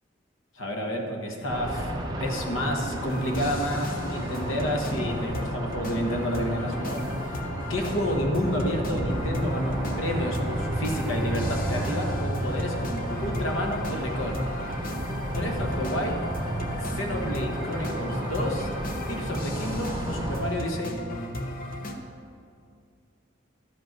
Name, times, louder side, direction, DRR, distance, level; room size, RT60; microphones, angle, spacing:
voice 1, 0.5-1.9 2.2-14.4 15.3-16.2 16.8-18.7 19.1-21.0, equal, 85° left, 1 dB, 1.3 m, -30 dB
sound 1, 1.5-20.4, right 1 dB, 20° right, 0.9 m, -33 dB
sound 2, 3.1-21.9, left 1 dB, 45° left, 0.8 m, -35 dB
Bowed string instrument, 9.5-13.9, right 2 dB, 5° right, 0.4 m, -34 dB
11.5 x 5.3 x 6.0 m, 2.3 s
head